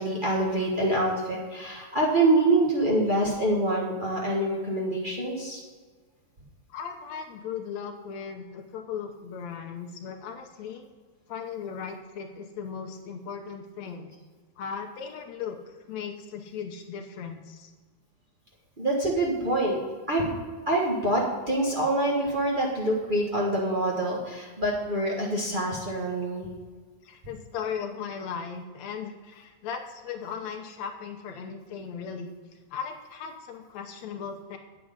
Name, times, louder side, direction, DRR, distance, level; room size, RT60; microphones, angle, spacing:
voice 1, 0.0-5.6 18.8-19.8 20.1-20.3 20.7-26.5, right 1 dB, 45° right, -4 dB, 0.6 m, -25 dB
voice 2, 6.7-10.9 11.3-14.1 14.6-17.7 27.0-32.4 32.7-34.6, left 6 dB, 70° left, 4 dB, 1.9 m, -37 dB
9.3 x 8.1 x 5.1 m, 1.5 s
omnidirectional pair, 3.6 m